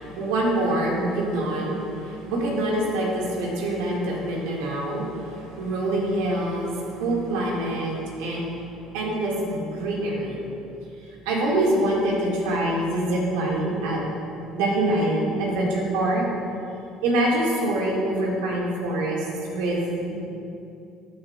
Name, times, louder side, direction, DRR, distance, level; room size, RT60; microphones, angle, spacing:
voice 1, 0.0-8.5 8.9-10.4 11.3-14.0 14.5-16.3 17.0-20.2, right 1 dB, 85° right, -3 dB, 1.9 m, -25 dB
13.5 x 7.6 x 2.4 m, 2.8 s
supercardioid pair, 80°, 0 cm